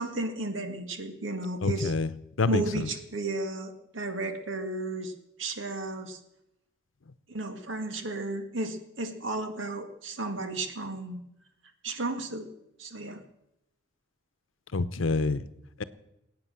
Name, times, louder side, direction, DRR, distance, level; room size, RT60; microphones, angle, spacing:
voice 1, 0.0-1.9 2.5-5.1 5.4-6.2 7.3-11.2 11.8-12.5 12.8-13.2, right 2 dB, 80° right, 7 dB, 1.9 m, -33 dB
voice 2, 1.6-2.1 2.4-2.9 14.7-15.4, left 3 dB, 85° left, 14 dB, 0.8 m, -27 dB
20.0 x 9.0 x 7.6 m, 0.84 s
head